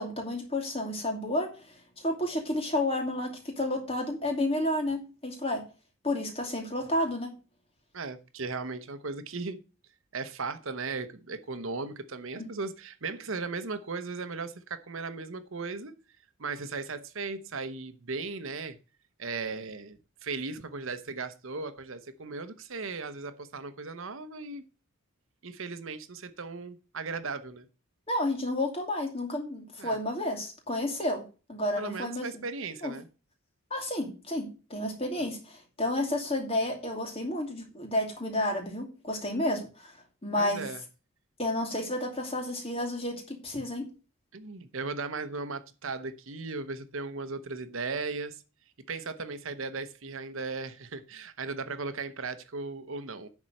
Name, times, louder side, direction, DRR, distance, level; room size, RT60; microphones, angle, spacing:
voice 1, 0.0-5.6 6.0-7.3 12.3-12.5 28.1-31.2 31.5-32.3 32.8-33.0 33.7-39.9 40.2-40.7 41.4-43.9, left 1 dB, 25° left, 2.5 m, -31 dB
voice 2, 7.9-9.6 10.1-15.9 16.4-18.8 19.2-24.6 25.4-27.7 29.8-30.0 31.8-33.1 40.4-40.8 44.3-48.4 48.9-53.3, right 4 dB, 65° right, 0.9 m, -37 dB
10.5 x 4.2 x 7.8 m
head